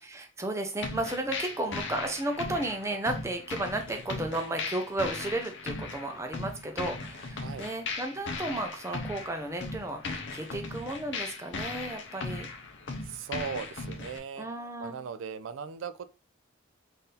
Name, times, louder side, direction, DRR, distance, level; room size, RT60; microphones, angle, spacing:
voice 1, 0.0-12.5 14.4-15.2, right 1 dB, 15° right, 0.6 m, -34 dB
sound 1, 0.8-14.2, left 3 dB, 60° left, 0.7 m, -38 dB
voice 2, 13.0-14.5 14.8-16.0, right 6 dB, 80° right, 0.4 m, -38 dB
4.0 x 2.7 x 3.8 m
head